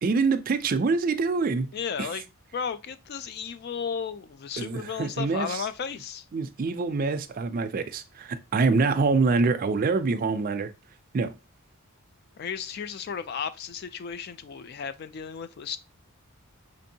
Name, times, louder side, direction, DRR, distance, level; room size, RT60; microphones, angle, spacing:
voice 1, 0.0-1.7 2.0-2.1 4.6-5.7 6.3-10.7 11.1-11.3, right 4 dB, 40° right, 0.3 m, -25 dB
voice 2, 1.7-2.2 2.5-6.3 12.4-15.8, left 6 dB, 45° left, 0.3 m, -34 dB
5.1 x 2.6 x 2.7 m
head